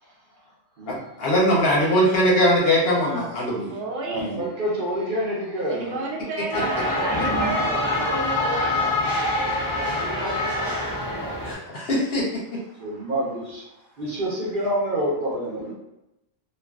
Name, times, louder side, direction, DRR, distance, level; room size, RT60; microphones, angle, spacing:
voice 1, 0.9-3.7 4.2-4.4 11.4-12.6, equal, 60° left, -4 dB, 0.8 m, -21 dB
voice 2, 2.9-3.3 3.7-4.3 5.7-9.0, right 2 dB, 80° right, -1 dB, 1.0 m, -31 dB
voice 3, 4.0-6.0 7.2-8.6 9.4-11.9 12.7-13.6 14.0-15.7, right 1 dB, 50° right, -5 dB, 0.8 m, -29 dB
sound 1, 6.5-11.5, left 2 dB, 30° left, 0.4 m, -25 dB
2.4 x 2.3 x 2.3 m, 0.91 s
omnidirectional pair, 1.3 m